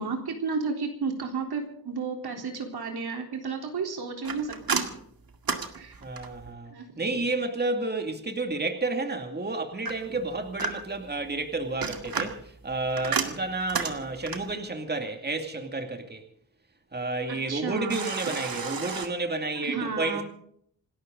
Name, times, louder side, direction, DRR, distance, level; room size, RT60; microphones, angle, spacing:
voice 1, 0.0-4.9 5.7-5.9 6.7-7.1 10.1-10.2 17.3-18.0 19.6-20.2, right 4 dB, 80° right, 3 dB, 3.8 m, -32 dB
sound 1, 4.2-6.5 9.9-11.1 11.6-14.6 17.9-19.1, right 5 dB, 65° right, 2.1 m, -32 dB
voice 2, 6.0-16.2 16.9-20.2, right 2 dB, 25° right, 5 dB, 2.4 m, -31 dB
27.5 x 13.0 x 3.9 m, 0.65 s
wide cardioid pair, 110°, 38 cm